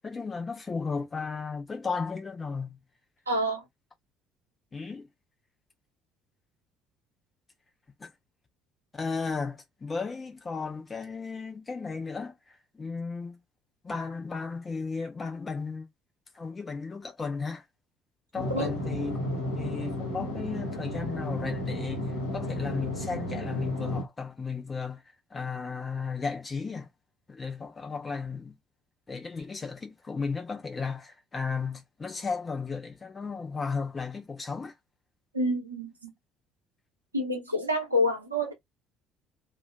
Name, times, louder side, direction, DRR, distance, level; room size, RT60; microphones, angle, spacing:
voice 1, 0.0-2.8 4.7-5.1 8.0-8.1 8.9-12.4 12.7-13.4 13.8-15.9 16.3-17.6 18.3-25.0 25.3-26.9 27.3-28.6 29.1-34.7, left 4 dB, 25° left, 1.2 m, -34 dB
voice 2, 3.3-3.6 18.5-18.7 35.3-36.1 37.1-38.5, equal, 85° right, 1.1 m, -28 dB
sound 1, 18.3-24.0, left 1 dB, 80° left, 1.3 m, -33 dB
2.9 x 2.7 x 3.4 m
figure-of-eight pair, 50°, 0 cm